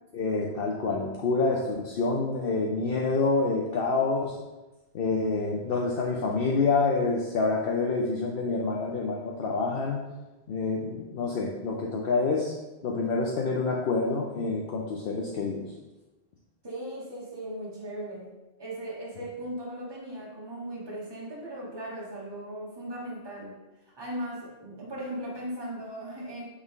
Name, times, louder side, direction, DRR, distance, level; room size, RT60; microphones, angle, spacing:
voice 1, 0.1-4.4 4.9-10.0 10.5-12.5 12.8-15.6, left 3 dB, 60° left, -1 dB, 0.8 m, -27 dB
voice 2, 16.6-18.3 18.6-23.5 23.8-26.4, right 1 dB, 20° right, -5 dB, 1.3 m, -38 dB
8.0 x 3.3 x 3.6 m, 1.1 s
omnidirectional pair, 1.2 m